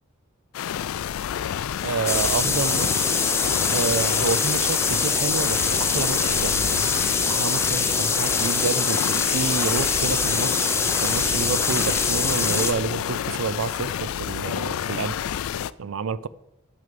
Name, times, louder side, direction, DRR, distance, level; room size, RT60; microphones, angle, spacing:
sound 1, 0.5-15.7, left 9 dB, 75° left, 0.3 m, -29 dB
voice 1, 1.8-3.2 3.7-6.9 7.3-15.2 15.8-16.3, right 5 dB, 70° right, 0.4 m, -29 dB
sound 2, 2.1-12.7, left 4 dB, 10° left, 0.6 m, -24 dB
8.9 x 6.5 x 6.8 m
head